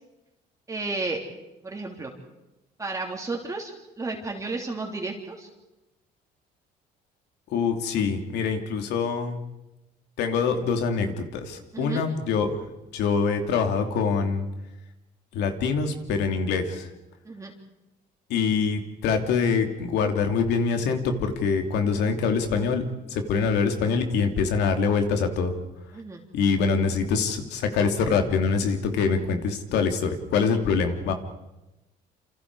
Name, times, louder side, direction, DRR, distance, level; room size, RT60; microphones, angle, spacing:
voice 1, 0.7-1.2 1.6-2.1 2.8-5.5 11.7-12.0 17.2-17.5 25.9-26.2, right 3 dB, 20° right, 0 dB, 3.1 m, -32 dB
voice 2, 7.5-9.4 10.2-12.6 12.9-14.4 15.3-16.9 18.3-25.5 26.3-31.1, left 5 dB, 80° left, 5 dB, 3.0 m, -24 dB
28.0 x 27.5 x 4.9 m, 0.99 s
cardioid pair, 110°, 17 cm